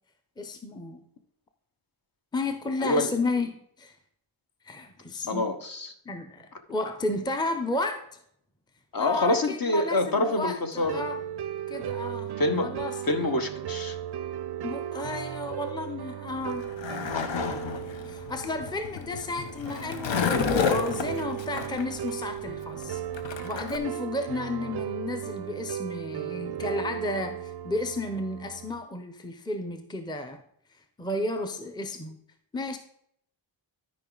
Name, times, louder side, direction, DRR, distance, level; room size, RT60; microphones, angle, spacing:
voice 1, 0.4-1.0 2.3-3.9 4.7-5.6 6.1-8.2 9.0-11.2 11.7-12.3 12.6-13.0 14.6-16.7 18.1-23.0 23.4-30.4 31.0-32.2 32.5-32.8, left 2 dB, 10° left, 6 dB, 0.6 m, -32 dB
voice 2, 2.8-3.1 5.3-5.9 8.9-11.0 12.4-12.7 13.1-14.0, left 2 dB, 45° left, 5 dB, 1.1 m, -26 dB
sound 1, 10.8-28.8, right 10 dB, 55° right, 0.5 m, -36 dB
Skateboard, 16.3-23.8, left 7 dB, 70° left, 0.8 m, -31 dB
12.5 x 5.1 x 3.9 m, 0.69 s
wide cardioid pair, 90°, 47 cm